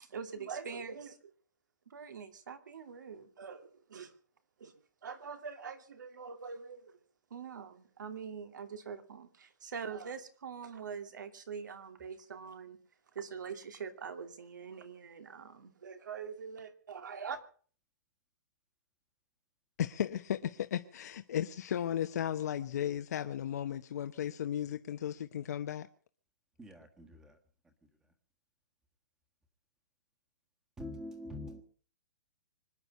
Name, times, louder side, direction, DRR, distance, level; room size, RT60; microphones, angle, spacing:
voice 1, 0.1-1.3 1.9-4.1 4.6-4.7 5.0-6.9 7.3-12.8 13.1-17.4, right 6 dB, 80° right, 2.6 m, -44 dB
voice 2, 19.8-25.9, left 10 dB, 60° left, 0.9 m, -35 dB
voice 3, 26.6-27.4 27.6-27.7 30.8-31.6, left 1 dB, 5° right, 1.5 m, -45 dB
25.0 x 10.0 x 5.5 m
hypercardioid pair, 165°, 10 cm